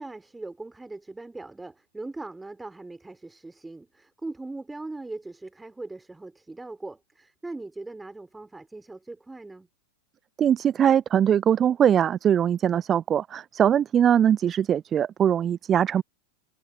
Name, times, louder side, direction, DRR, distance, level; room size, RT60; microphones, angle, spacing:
voice 1, 0.0-9.7, right 2 dB, 10° right, 4.5 m, -40 dB
voice 2, 10.4-16.0, right 9 dB, 25° right, 0.4 m, -21 dB
figure-of-eight pair, 90°, 0 cm